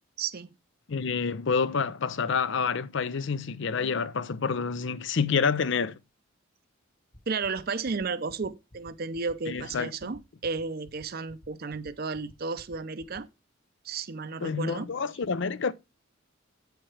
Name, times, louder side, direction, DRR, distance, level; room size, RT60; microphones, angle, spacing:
voice 1, 0.2-0.5 7.3-13.3 13.8-14.9, right 4 dB, 45° right, 0.6 m, -33 dB
voice 2, 0.9-5.9 9.5-9.9 14.4-15.7, left 5 dB, 60° left, 0.6 m, -28 dB
sound 1, 7.1-13.2, left 1 dB, 35° left, 1.1 m, -51 dB
8.8 x 4.6 x 4.8 m
head